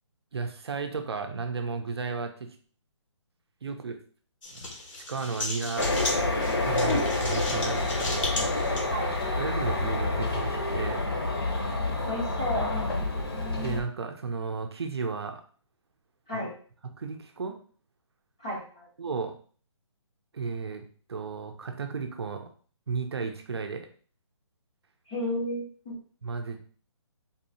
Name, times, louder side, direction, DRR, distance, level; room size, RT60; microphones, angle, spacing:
voice 1, 0.3-2.5 3.6-4.0 5.0-5.9 6.6-8.3 9.4-11.0 13.5-15.4 16.3-16.5 17.0-17.6 19.0-19.3 20.3-22.5 22.9-23.9 26.2-26.6, right 4 dB, 55° right, 5 dB, 0.6 m, -34 dB
sound 1, 4.4-8.8, left 2 dB, 90° left, 1.3 m, -35 dB
sound 2, 5.8-13.8, left 2 dB, 50° left, 0.8 m, -28 dB
voice 2, 12.0-13.0 16.3-16.5 18.4-18.9 25.1-25.9, left 1 dB, 15° left, -4 dB, 0.5 m, -32 dB
4.0 x 2.7 x 2.7 m, 0.42 s
hypercardioid pair, 180°, 16 cm